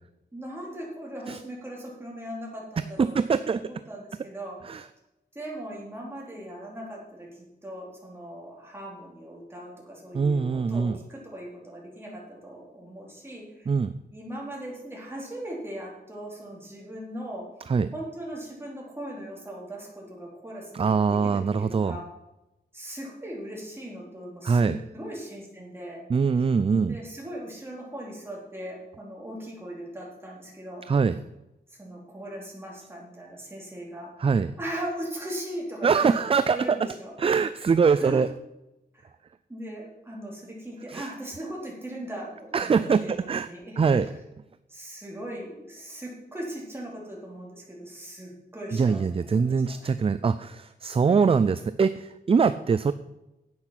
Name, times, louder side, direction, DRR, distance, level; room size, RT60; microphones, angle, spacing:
voice 1, 0.3-4.9 5.3-13.7 14.1-17.5 17.9-22.1 22.7-26.0 26.7-30.9 31.7-34.1 34.6-37.2 37.9-38.2 38.9-39.1 39.5-43.1 43.4-44.2 44.7-49.9 51.1-51.4, right 1 dB, 15° right, -3 dB, 3.9 m, -39 dB
voice 2, 3.0-3.6 4.7-4.8 10.1-11.0 13.7-13.9 17.7-17.9 20.7-22.0 24.4-24.8 26.1-27.0 30.9-31.1 34.2-34.5 35.8-36.8 37.2-38.3 40.9-41.1 42.5-43.5 43.8-44.1 48.7-52.9, right 5 dB, 35° right, 13 dB, 0.4 m, -23 dB
10.5 x 8.7 x 5.9 m, 0.95 s
wide cardioid pair, 130°, 18 cm